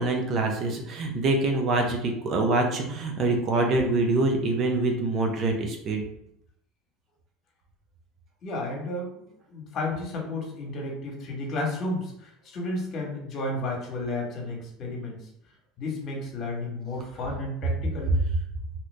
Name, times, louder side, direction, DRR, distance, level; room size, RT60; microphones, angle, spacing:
voice 1, 0.0-6.0, right 2 dB, 45° right, 3 dB, 0.6 m, -25 dB
voice 2, 8.4-15.2 15.8-18.1, left 2 dB, 45° left, -1 dB, 1.2 m, -32 dB
2.9 x 2.5 x 3.3 m, 0.75 s
supercardioid pair, 110°, 0 cm